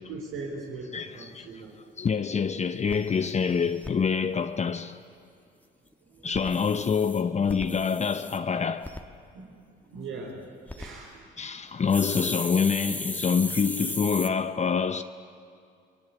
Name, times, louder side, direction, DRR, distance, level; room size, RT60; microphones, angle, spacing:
voice 1, 0.0-1.8 6.0-6.3 9.3-11.5, right 3 dB, 90° right, 3.9 m, -41 dB
voice 2, 0.9-1.5 2.0-5.0 6.2-8.9 11.4-15.0, left 6 dB, 35° left, 0.8 m, -26 dB
sound 1, 1.7-1.8 2.2-2.3 2.5-2.6 2.9-3.9 6.2-8.4 8.8-9.0 10.5-10.9 11.9-14.3, left 1 dB, 10° left, 1.7 m, -36 dB
28.5 x 21.5 x 8.3 m
cardioid pair, 90°, 20 cm